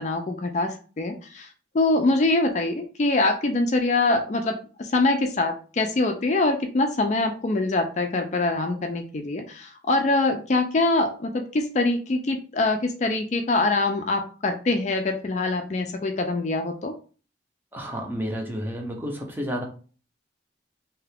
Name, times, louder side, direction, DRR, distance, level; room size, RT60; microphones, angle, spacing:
voice 1, 0.0-1.5 1.7-16.9, left 2 dB, 40° left, 5 dB, 0.4 m, -24 dB
voice 2, 17.7-19.6, equal, 10° right, 1 dB, 0.6 m, -31 dB
2.8 x 2.4 x 3.3 m, 0.37 s
head